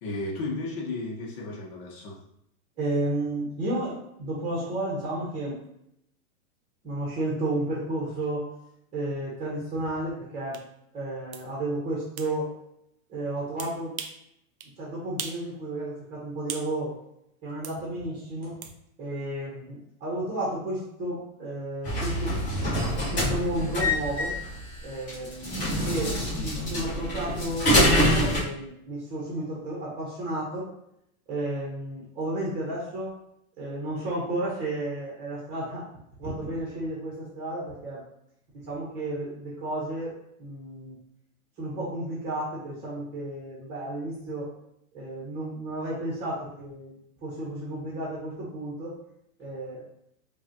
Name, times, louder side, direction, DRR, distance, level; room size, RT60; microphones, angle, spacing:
voice 1, 0.0-2.2, left 2 dB, 40° left, -2 dB, 1.1 m, -34 dB
voice 2, 2.8-5.6 6.8-8.5 8.9-10.6 10.9-12.5 13.1-13.9 14.8-16.9 17.4-18.6 19.0-22.3 23.1-24.3 24.8-26.1 26.4-30.7 31.3-33.2 33.6-35.8 36.2-38.0 38.6-40.1 40.4-41.0 41.6-44.5 44.9-48.9 49.4-49.9, right 1 dB, 15° right, -5 dB, 1.0 m, -32 dB
sound 1, 10.5-10.7 11.3-11.5 12.2-12.3 13.6-14.2 14.6-14.7 15.2-15.5 15.8-16.7 17.6-17.8 18.6-18.8, right 8 dB, 70° right, 0.6 m, -38 dB
sound 2, 21.8-28.4, equal, 20° left, 1.5 m, -25 dB
5.0 x 2.4 x 2.8 m, 0.76 s
supercardioid pair, 155°, 44 cm